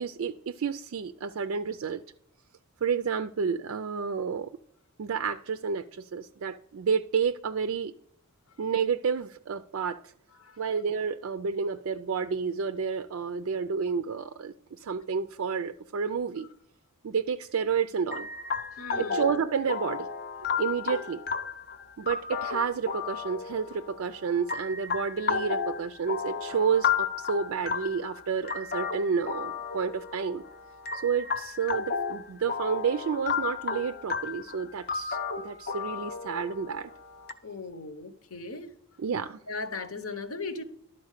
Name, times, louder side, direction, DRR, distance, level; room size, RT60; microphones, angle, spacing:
voice 1, 0.0-2.0 2.8-4.5 5.0-7.9 8.6-10.0 10.6-16.5 17.0-18.3 19.0-20.1 20.6-21.2 22.0-30.4 30.9-36.9 39.0-39.4, right 6 dB, 60° right, 0.4 m, -30 dB
sound 1, 18.1-37.3, left 6 dB, 45° left, 0.7 m, -33 dB
voice 2, 18.8-19.2 37.4-38.7 39.5-40.6, left 3 dB, 65° left, 1.0 m, -37 dB
12.0 x 4.3 x 6.5 m
head